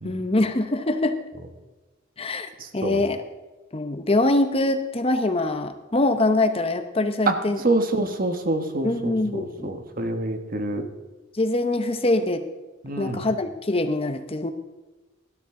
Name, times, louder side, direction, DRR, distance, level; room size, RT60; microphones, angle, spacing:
voice 1, 0.0-1.2 2.2-3.2 3.7-7.6 8.8-9.7 11.3-12.4 13.0-14.5, left 2 dB, 30° left, 8 dB, 0.8 m, -24 dB
voice 2, 2.6-3.0 7.3-7.4 7.6-10.9 12.8-13.2, right 2 dB, 45° right, 7 dB, 1.3 m, -26 dB
17.5 x 12.5 x 3.8 m, 1.2 s
head